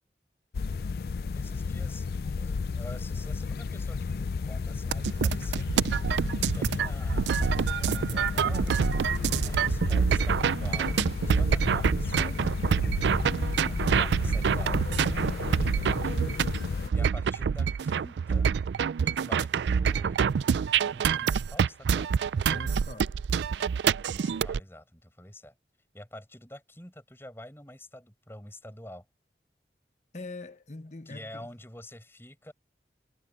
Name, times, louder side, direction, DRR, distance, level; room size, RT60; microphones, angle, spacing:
sound 1, 0.5-16.9, left 4 dB, 60° left, 0.4 m, -32 dB
voice 1, 1.3-2.1 2.3-5.8 6.4-8.8 9.4-12.4 13.6-16.1 16.9-18.5 19.0-20.2 20.7-22.1 24.1-25.5 25.9-29.0 31.1-32.5, left 1 dB, 15° left, 6.2 m, -47 dB
sound 2, 4.9-24.6, right 6 dB, 85° right, 0.4 m, -26 dB
sound 3, 8.6-15.7, equal, 45° right, 4.9 m, -41 dB
voice 2, 22.4-23.2 30.1-31.5, left 2 dB, 40° left, 1.2 m, -42 dB
head